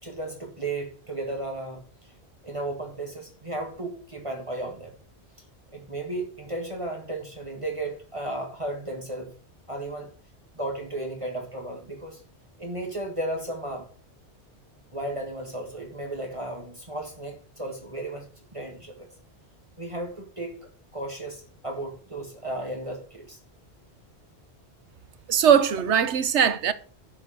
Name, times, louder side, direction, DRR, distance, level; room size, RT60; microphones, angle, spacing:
voice 1, 0.0-2.1 2.4-4.9 5.7-9.4 9.7-10.1 10.5-12.2 12.6-13.9 14.9-18.3 18.5-19.1 19.8-20.6 20.9-23.4, right 2 dB, 30° right, 1.9 m, -34 dB
voice 2, 25.3-26.7, right 8 dB, 85° right, 1.1 m, -20 dB
12.0 x 4.8 x 6.4 m
omnidirectional pair, 1.1 m